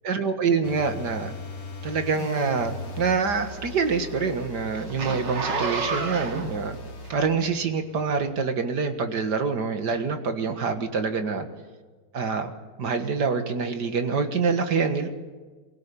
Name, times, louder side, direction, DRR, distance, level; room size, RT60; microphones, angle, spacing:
voice 1, 0.0-1.3 1.8-6.8 7.1-11.5 12.1-12.5 12.8-15.1, right 5 dB, 70° right, 8 dB, 2.2 m, -26 dB
sound 1, 0.6-7.2, left 3 dB, 55° left, 2.8 m, -39 dB
Zipper (clothing), 2.6-7.6 8.1-8.3, right 4 dB, 90° right, 2.6 m, -31 dB
23.0 x 16.5 x 8.5 m, 1.4 s
omnidirectional pair, 1.9 m